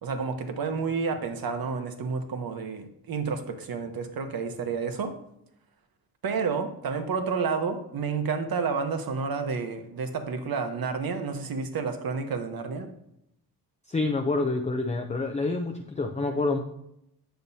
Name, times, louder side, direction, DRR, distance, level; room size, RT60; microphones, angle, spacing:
voice 1, 0.0-5.1 6.2-12.9, right 5 dB, 55° right, 7 dB, 1.0 m, -30 dB
voice 2, 13.9-16.6, left 3 dB, 15° left, 3 dB, 0.5 m, -27 dB
8.9 x 6.8 x 2.7 m, 0.78 s
wide cardioid pair, 135°, 41 cm